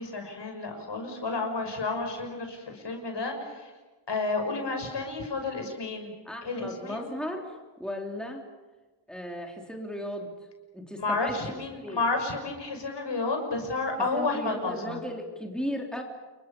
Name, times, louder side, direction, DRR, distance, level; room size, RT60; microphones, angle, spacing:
voice 1, 0.0-3.7 4.1-6.1 6.4-7.0 11.0-15.0, left 3 dB, 65° left, 4 dB, 6.1 m, -31 dB
voice 2, 6.3-8.5 9.1-10.3 10.7-11.6 11.8-12.0 14.1-16.0, left 1 dB, ahead, 1 dB, 3.5 m, -36 dB
29.5 x 22.5 x 7.0 m, 1.2 s
wide cardioid pair, 85°, 46 cm